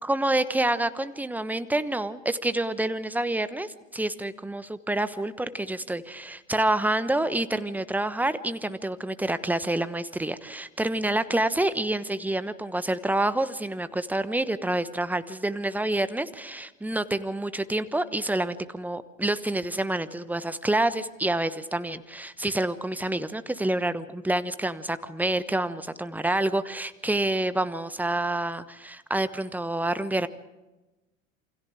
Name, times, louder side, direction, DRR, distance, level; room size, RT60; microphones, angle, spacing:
voice 1, 0.0-30.3, right 1 dB, 5° right, 13 dB, 1.1 m, -28 dB
28.0 x 25.5 x 3.6 m, 1.1 s
figure-of-eight pair, 80°, 39 cm